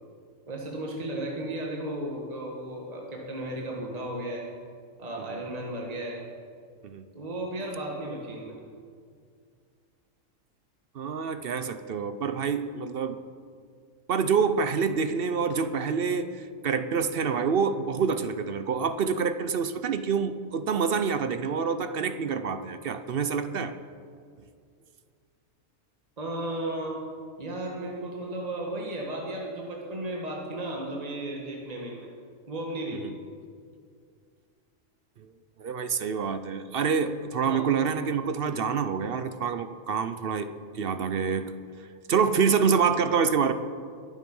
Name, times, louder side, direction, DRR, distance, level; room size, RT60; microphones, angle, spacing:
voice 1, 0.5-4.5 5.0-6.2 7.1-8.6 26.2-27.0 27.4-32.1 32.5-33.1 37.4-37.6, right 1 dB, 30° right, -2 dB, 1.7 m, -34 dB
voice 2, 10.9-13.2 14.1-23.7 33.0-33.1 35.2-35.3 35.6-40.5 40.7-41.5 42.1-43.5, right 6 dB, 55° right, 11 dB, 0.7 m, -27 dB
21.5 x 7.3 x 5.4 m, 2.2 s
omnidirectional pair, 1.4 m